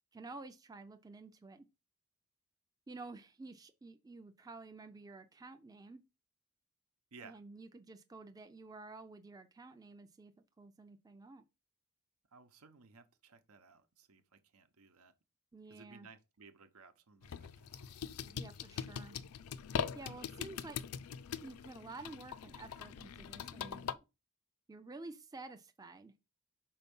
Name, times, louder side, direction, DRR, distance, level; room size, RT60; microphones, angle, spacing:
voice 1, 0.1-1.7 2.9-6.0 7.2-10.3 10.6-11.4 15.5-16.1 18.2-19.2 19.9-20.8 21.4-24.0 24.7-26.1, right 3 dB, 15° right, 0.5 m, -51 dB
voice 2, 12.3-15.1 15.7-17.8, right 4 dB, 70° right, 0.9 m, -58 dB
sound 1, 17.2-23.9, left 7 dB, 70° left, 0.4 m, -42 dB
5.6 x 4.4 x 5.4 m
head